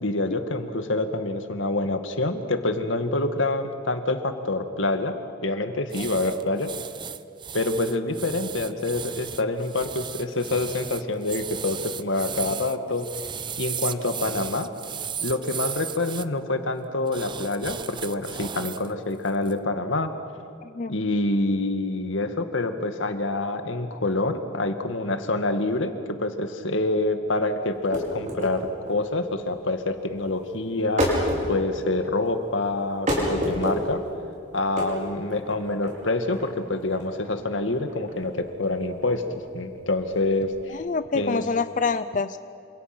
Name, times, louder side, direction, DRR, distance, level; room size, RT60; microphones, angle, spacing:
voice 1, 0.0-5.1 5.4-6.7 7.5-13.1 13.6-14.7 15.2-20.1 20.9-31.1 31.5-34.0 34.5-40.8 41.1-41.4, left 2 dB, 85° left, 7 dB, 1.9 m, -26 dB
sound 1, 5.9-16.3 17.1-18.9 19.3-19.5, right 8 dB, 25° right, 0.6 m, -35 dB
voice 2, 20.6-20.9 40.7-42.4, left 4 dB, 40° left, 12 dB, 0.5 m, -27 dB
sound 2, 27.7-40.7, equal, 40° right, 5.4 m, -30 dB
28.0 x 26.5 x 6.1 m, 2.5 s
head